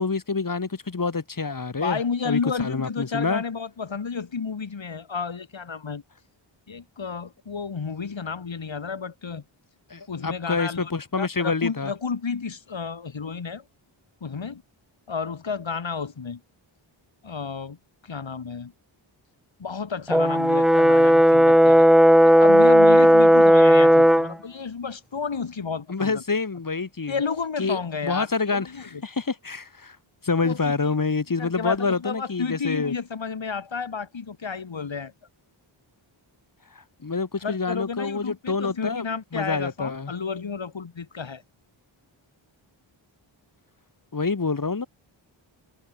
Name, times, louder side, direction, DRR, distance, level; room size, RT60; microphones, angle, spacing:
voice 1, 0.0-2.0 2.2-3.4 9.9-11.9 25.9-27.1 27.6-30.0 30.2-32.9 36.8-39.1 39.3-40.1 44.1-44.9, left 4 dB, 40° left, 3.5 m, -27 dB
voice 2, 1.8-6.0 6.7-9.4 10.1-10.9 11.2-13.7 14.2-14.6 15.1-16.4 17.2-17.8 18.0-18.7 19.6-21.9 22.2-26.2 27.1-29.0 30.4-30.7 31.4-35.1 37.4-41.4, left 5 dB, 65° left, 6.5 m, -31 dB
Brass instrument, 20.1-24.3, equal, ahead, 0.4 m, -15 dB
wide cardioid pair, 95°, 48 cm